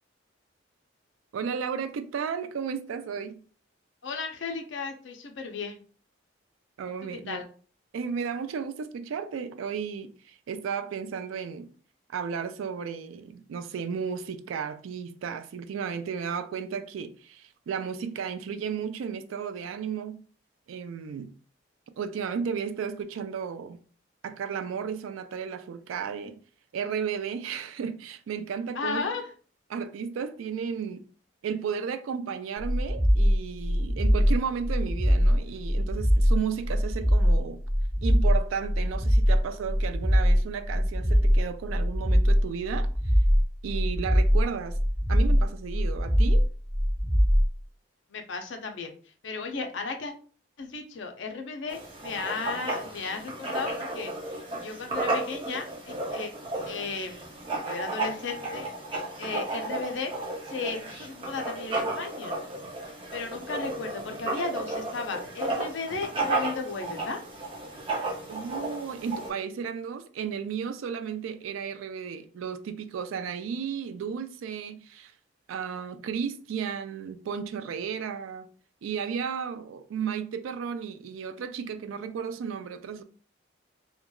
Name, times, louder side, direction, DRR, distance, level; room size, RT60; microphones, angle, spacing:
voice 1, 1.3-3.4 6.8-7.4 7.9-11.7 12.1-20.2 20.7-21.3 22.0-23.8 24.2-26.4 26.7-29.1 29.7-31.0 31.4-37.6 38.0-42.9 43.6-44.8 45.1-46.5 68.3-75.1 75.5-78.5 78.8-83.0, right 6 dB, 90° right, 0.3 m, -34 dB
voice 2, 4.0-5.8 7.3-7.4 28.7-29.2 48.1-48.9 49.2-50.1 50.6-56.3 56.7-58.7 59.2-60.1 60.5-62.3 63.1-67.2, left 4 dB, 70° left, 0.5 m, -35 dB
sound 1, 32.6-47.5, equal, 5° right, 0.9 m, -22 dB
Writing, 51.7-69.3, right 2 dB, 25° right, 0.5 m, -33 dB
2.8 x 2.2 x 2.2 m
head